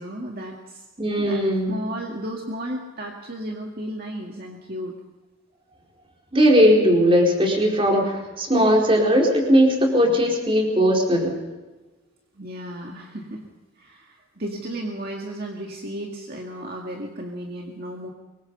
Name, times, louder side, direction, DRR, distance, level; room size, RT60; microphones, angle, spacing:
voice 1, 0.0-0.8 1.1-1.4 1.7-5.0 10.0-10.2 12.4-13.5 13.8-18.1, right 1 dB, 50° right, 0 dB, 2.1 m, -34 dB
voice 2, 1.0-1.8 6.3-11.4, equal, 25° right, 0 dB, 4.5 m, -18 dB
25.0 x 23.0 x 5.5 m, 1.2 s
head